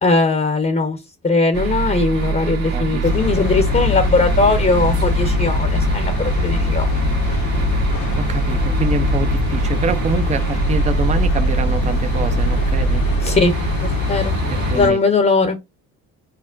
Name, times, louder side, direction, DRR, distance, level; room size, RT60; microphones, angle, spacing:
voice 1, 0.0-1.0 1.2-6.9 13.2-13.5 13.8-14.3 14.7-15.6, left 3 dB, 25° left, 0.9 m, -19 dB
sound 1, 1.5-14.9, right 5 dB, 75° right, 1.6 m, -23 dB
voice 2, 2.7-3.0 8.2-13.0 14.7-15.0, right 4 dB, 20° right, 0.6 m, -25 dB
sound 2, 3.0-14.9, left 5 dB, 65° left, 1.2 m, -23 dB
5.8 x 2.1 x 2.5 m
supercardioid pair, 65°, 36 cm